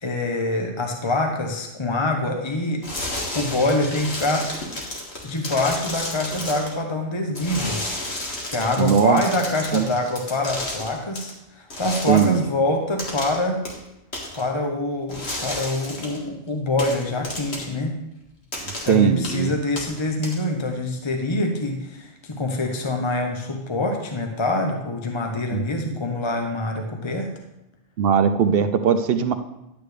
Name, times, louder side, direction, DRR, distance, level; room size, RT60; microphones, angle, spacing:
voice 1, 0.0-2.8 3.3-4.5 5.2-7.8 8.5-13.6 14.3-18.0 18.8-27.3, left 2 dB, 25° left, 3 dB, 0.8 m, -25 dB
sound 1, 2.8-6.7 7.3-11.3 11.7-12.4 13.0-13.4 13.7-13.8 14.1-14.4 15.1-16.2 16.8-17.7 18.5-18.9 19.2-19.5 19.8-20.6, left 1 dB, 65° left, 2.1 m, -32 dB
voice 2, 8.8-9.2 9.7-9.9 12.1-12.4 18.6-19.5 25.5-25.6 28.0-29.3, right 7 dB, 65° right, 9 dB, 0.7 m, -19 dB
11.0 x 8.7 x 3.3 m, 0.90 s
omnidirectional pair, 1.2 m